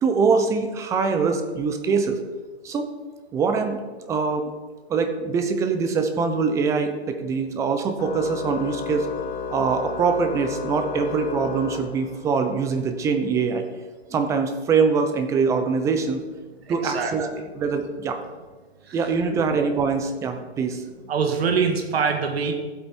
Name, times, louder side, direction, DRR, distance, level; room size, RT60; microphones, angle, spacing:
voice 1, 0.0-2.2 2.6-2.9 3.3-3.8 4.1-4.4 4.9-9.1 9.5-13.6 14.1-16.2 16.7-18.2 18.9-20.8, right 5 dB, 10° right, 7 dB, 0.6 m, -23 dB
Organ, 8.0-12.5, left 5 dB, 50° left, 2.5 m, -32 dB
voice 2, 16.7-17.4 18.9-19.0 19.5-19.6 21.1-22.5, right 5 dB, 65° right, 4 dB, 1.7 m, -24 dB
14.5 x 8.1 x 4.4 m, 1.4 s
hypercardioid pair, 145°, 33 cm